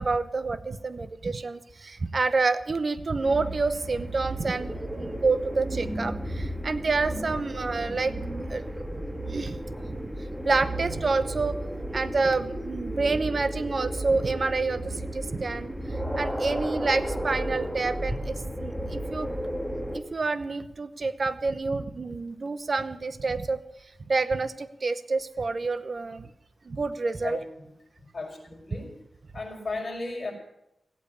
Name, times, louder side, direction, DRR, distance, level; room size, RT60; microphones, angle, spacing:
voice 1, 0.0-8.1 8.5-8.6 9.3-9.6 10.4-11.5 11.9-18.3 18.6-19.3 19.9-23.6 24.1-26.3 26.6-27.4, right 3 dB, 50° right, 12 dB, 0.9 m, -28 dB
sound 1, 3.2-20.0, right 1 dB, 5° right, 1.7 m, -33 dB
voice 2, 27.2-27.7 28.1-29.0 29.3-30.3, left 3 dB, 40° left, 1 dB, 5.1 m, -35 dB
16.5 x 8.7 x 8.6 m, 0.83 s
wide cardioid pair, 85°, 0 cm